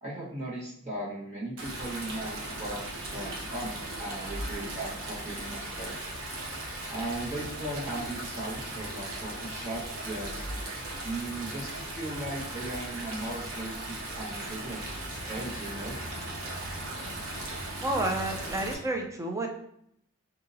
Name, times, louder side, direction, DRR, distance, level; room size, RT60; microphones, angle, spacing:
voice 1, 0.0-2.8 3.1-6.0 6.9-10.5 11.0-13.7 14.1-14.8 15.1-16.0, right 1 dB, 35° right, -6 dB, 1.3 m, -37 dB
Stream, 1.6-18.7, right 1 dB, 75° right, 1.0 m, -37 dB
voice 2, 17.8-19.5, right 2 dB, 15° right, 2 dB, 0.5 m, -30 dB
5.3 x 2.7 x 2.7 m, 0.73 s
head